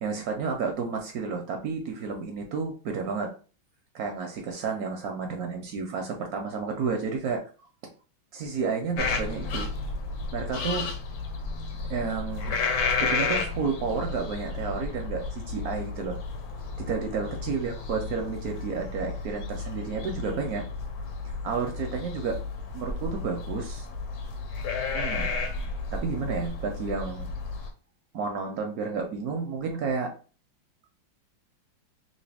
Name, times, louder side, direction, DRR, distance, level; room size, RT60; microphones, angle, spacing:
voice 1, 0.0-3.3 3.9-7.4 8.3-9.7 10.3-10.9 11.9-12.5 13.0-16.2 16.8-20.6 21.4-22.4 22.7-23.9 24.9-25.5 25.9-27.3 28.1-30.1, right 5 dB, 70° right, 3 dB, 0.8 m, -31 dB
sound 1, 9.0-27.7, left 4 dB, 70° left, 1.1 m, -32 dB
3.1 x 2.6 x 3.3 m, 0.36 s
omnidirectional pair, 2.1 m